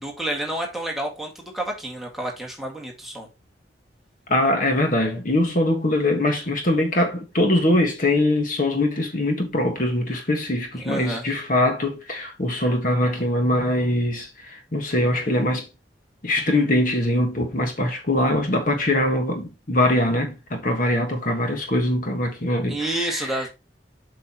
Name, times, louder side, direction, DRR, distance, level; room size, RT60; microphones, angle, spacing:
voice 1, 0.0-3.3 10.8-11.2 22.7-23.5, right 1 dB, ahead, 1.9 m, -29 dB
voice 2, 4.3-15.7 16.2-23.5, left 1 dB, 45° left, 1.6 m, -22 dB
7.8 x 5.6 x 3.0 m
head